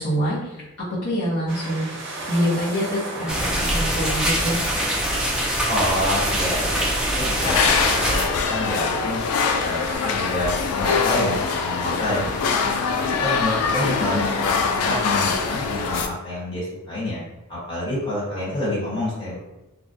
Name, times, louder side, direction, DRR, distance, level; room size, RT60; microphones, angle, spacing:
voice 1, 0.0-1.9 2.2-4.6 14.0-14.4, equal, 50° left, -11 dB, 0.8 m, -25 dB
sound 1, 1.5-10.0, right 2 dB, 55° right, 0.6 m, -37 dB
sound 2, 3.3-8.3, equal, 5° right, 0.3 m, -23 dB
voice 2, 5.7-9.2 9.6-12.5 13.0-17.2 17.5-19.4, left 1 dB, 20° left, -10 dB, 1.2 m, -28 dB
sound 3, 7.4-16.1, left 5 dB, 90° left, 0.3 m, -23 dB
2.3 x 2.1 x 2.6 m, 0.97 s
head